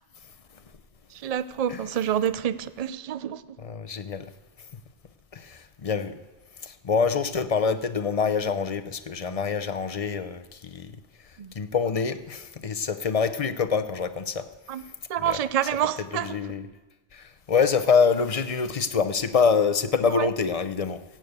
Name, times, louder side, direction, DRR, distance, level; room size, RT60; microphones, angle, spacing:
voice 1, 1.2-3.4 11.4-11.5 14.7-14.8 15.1-16.4 20.2-20.3, right 10 dB, 50° right, 15 dB, 0.4 m, -27 dB
voice 2, 3.6-4.3 4.6-4.7 5.3-6.2 6.6-10.9 11.2-14.5 14.7-14.9 15.2-15.4 16.1-16.7 17.1-21.0, left 5 dB, 40° left, 11 dB, 0.6 m, -26 dB
15.5 x 9.0 x 8.0 m, 1.1 s
omnidirectional pair, 1.2 m